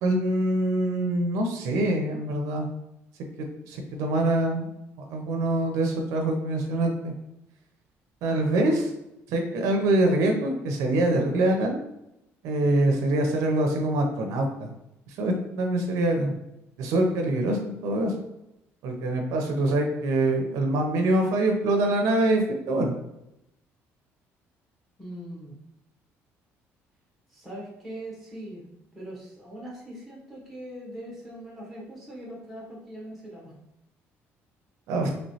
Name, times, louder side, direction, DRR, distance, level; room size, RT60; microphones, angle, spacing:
voice 1, 0.0-2.7 3.4-4.7 5.1-7.1 8.2-8.9 9.3-11.8 12.4-14.7 15.1-16.3 16.8-18.1 18.8-22.9 34.9-35.1, right 1 dB, 75° right, 3 dB, 0.5 m, -24 dB
voice 2, 25.0-25.5 27.3-28.7 28.9-33.5, right 1 dB, ahead, -5 dB, 0.9 m, -41 dB
3.1 x 3.0 x 2.7 m, 0.87 s
cardioid pair, 175°, 5 cm